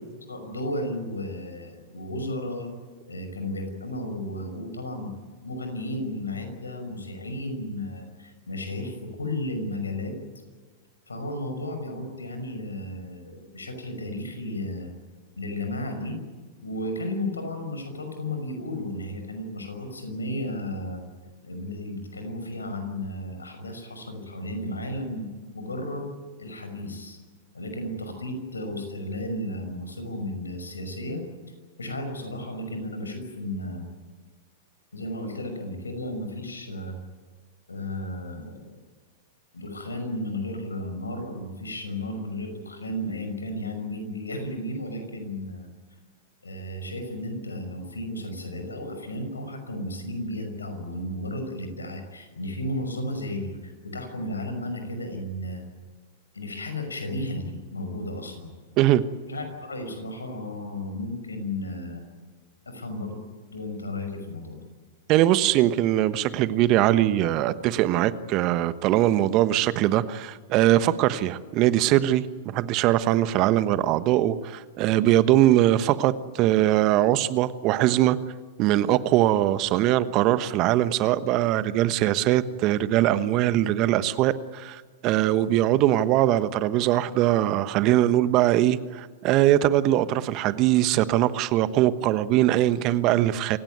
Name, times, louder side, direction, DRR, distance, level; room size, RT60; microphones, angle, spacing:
voice 1, 0.3-2.7 3.0-5.1 5.4-10.2 11.1-14.9 15.3-16.2 16.6-21.0 21.4-25.3 25.5-26.1 26.4-27.2 27.5-31.2 31.8-33.8 34.9-37.0 37.7-38.7 39.5-45.7 46.4-55.6 56.3-58.5 59.2-62.0 62.7-63.2 63.5-64.6, left 1 dB, 85° left, 6 dB, 5.9 m, -33 dB
voice 2, 65.1-78.2 78.6-93.6, right 13 dB, 40° right, 14 dB, 1.2 m, -21 dB
28.0 x 16.5 x 9.4 m, 1.5 s
hypercardioid pair, 100°, 0 cm